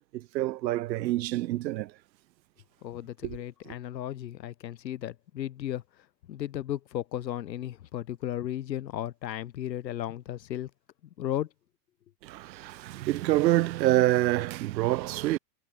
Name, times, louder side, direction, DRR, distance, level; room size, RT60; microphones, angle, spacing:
voice 1, 0.1-1.9 3.2-3.4 3.7-3.8 12.2-15.4, right 16 dB, 85° right, 0.7 m, -27 dB
voice 2, 2.8-10.7 11.2-11.5, left 12 dB, 80° left, 3.1 m, -35 dB
hypercardioid pair, 115°, 50 cm